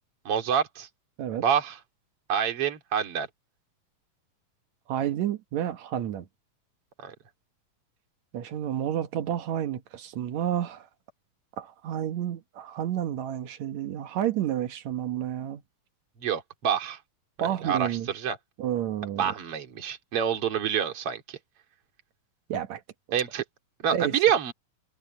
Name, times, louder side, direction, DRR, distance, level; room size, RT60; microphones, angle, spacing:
voice 1, 0.2-0.9 1.4-1.8 2.3-3.3 7.0-7.1 16.2-17.0 17.4-18.4 19.2-21.4 23.1-23.4 23.8-24.5, right 8 dB, 40° right, 3.3 m, -27 dB
voice 2, 4.9-6.3 8.3-10.9 11.6-15.6 17.4-18.1 18.6-19.3 22.5-22.8 23.9-24.1, right 11 dB, 60° right, 2.2 m, -30 dB
omnidirectional pair, 4.1 m